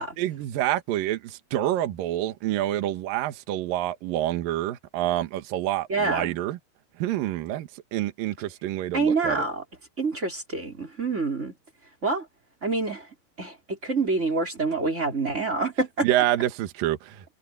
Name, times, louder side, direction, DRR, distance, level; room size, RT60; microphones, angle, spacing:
voice 1, 0.2-6.6 7.0-9.5 16.0-17.2, right 13 dB, 65° right, 2.8 m, -27 dB
voice 2, 5.9-6.3 8.9-9.6 10.0-11.5 12.0-12.3 12.6-13.1 13.4-16.1, right 3 dB, 15° right, 4.1 m, -26 dB
omnidirectional pair, 4.8 m